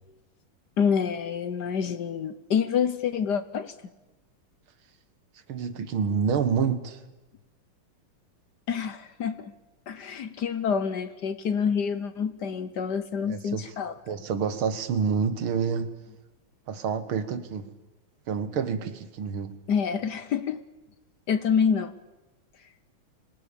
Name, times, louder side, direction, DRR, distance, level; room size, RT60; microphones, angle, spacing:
voice 1, 0.8-3.7 8.7-9.5 9.9-13.9 19.7-20.6 21.3-21.9, left 7 dB, 60° left, 12 dB, 1.4 m, -27 dB
voice 2, 5.5-7.0 13.3-13.7 14.1-15.9 16.7-17.8 18.3-19.6, right 6 dB, 75° right, 12 dB, 2.2 m, -28 dB
25.0 x 18.0 x 8.7 m, 1.1 s
omnidirectional pair, 2.3 m